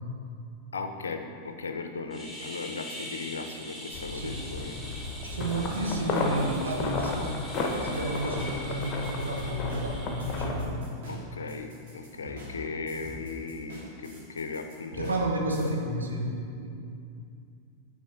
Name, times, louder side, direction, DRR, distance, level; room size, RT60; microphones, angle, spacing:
voice 1, 0.7-4.7 11.1-15.2, left 4 dB, 70° left, 6 dB, 0.5 m, -37 dB
sound 1, 2.1-10.5, equal, ahead, 1.5 m, -43 dB
sound 2, 3.9-10.7, left 3 dB, 30° left, 0.9 m, -33 dB
voice 2, 4.1-4.5 5.2-7.4 7.8-10.7 15.0-16.3 16.6-16.7, right 1 dB, 75° right, 0 dB, 1.0 m, -31 dB
sound 3, 5.0-15.7, left 1 dB, 55° right, 1.8 m, -45 dB
8.5 x 3.7 x 5.5 m, 2.4 s
figure-of-eight pair, 90°, 0 cm